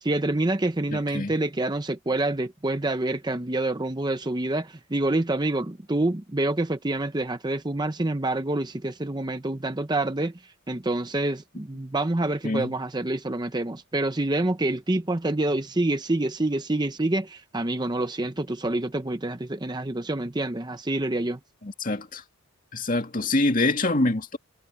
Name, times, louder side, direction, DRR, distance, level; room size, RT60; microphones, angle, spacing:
voice 1, 0.0-21.4, right 2 dB, 20° right, 0.7 m, -27 dB
voice 2, 0.9-1.3 12.4-12.7 21.6-22.2 22.7-24.4, left 2 dB, 40° left, 2.2 m, -25 dB
head